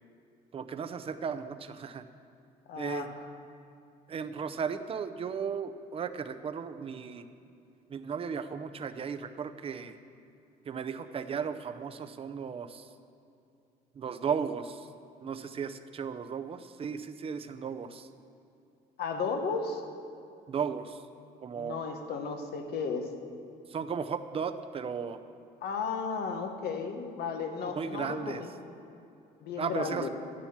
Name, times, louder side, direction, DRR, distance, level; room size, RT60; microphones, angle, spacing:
voice 1, 0.5-2.0 2.8-3.1 4.1-7.3 7.9-10.0 10.7-12.9 14.0-14.9 15.2-18.1 20.5-21.0 21.4-21.8 23.7-25.2 27.7-28.4 29.6-30.1, right 6 dB, 35° right, 9 dB, 0.6 m, -35 dB
voice 2, 2.7-3.2 19.0-19.8 21.6-23.1 25.6-28.5 29.4-30.1, left 5 dB, 75° left, 5 dB, 1.2 m, -34 dB
10.0 x 7.8 x 7.3 m, 2.6 s
cardioid pair, 110°, 17 cm